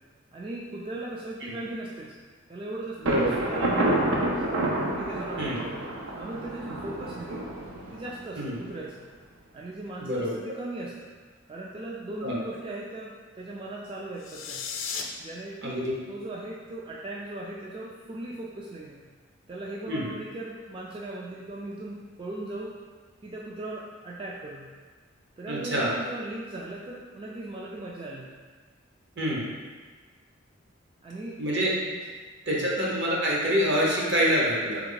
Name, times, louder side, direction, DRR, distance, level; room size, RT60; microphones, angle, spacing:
voice 1, 0.3-2.1 2.5-4.6 4.9-7.5 7.9-9.1 9.5-11.1 11.5-14.7 15.2-19.0 19.5-22.7 23.2-24.7 25.4-28.3 31.0-31.4 32.5-32.7, right 2 dB, 25° right, -4 dB, 0.3 m, -38 dB
voice 2, 3.0-3.3 5.4-5.6 8.4-8.5 10.0-10.6 12.2-12.4 15.6-15.8 19.9-20.1 25.5-25.9 29.2-29.4 31.4-31.7 32.5-34.8, equal, 60° right, -5 dB, 1.1 m, -26 dB
Thunder, 3.0-8.7, right 1 dB, 85° right, 0.7 m, -29 dB
sound 1, 14.2-15.0, left 6 dB, 75° left, 0.5 m, -34 dB
3.5 x 3.4 x 3.9 m, 1.4 s
head